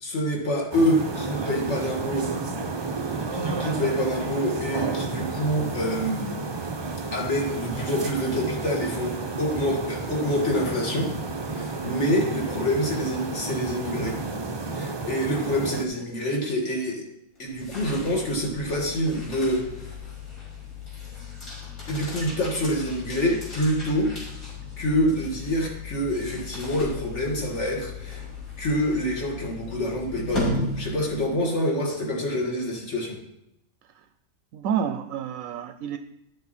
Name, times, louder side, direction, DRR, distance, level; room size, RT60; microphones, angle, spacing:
voice 1, 0.0-2.3 3.0-6.5 7.1-11.1 11.5-14.2 14.7-17.0 17.4-19.9 21.9-24.4 24.8-28.3 28.6-33.2, equal, 55° left, 0 dB, 2.2 m, -26 dB
sound 1, 0.7-15.8, right 3 dB, 35° right, 0.4 m, -31 dB
sound 2, 17.4-31.4, left 3 dB, 85° left, 4.6 m, -36 dB
voice 2, 34.5-36.0, right 8 dB, 75° right, 8 dB, 1.0 m, -29 dB
12.0 x 6.8 x 4.2 m, 0.83 s
omnidirectional pair, 1.5 m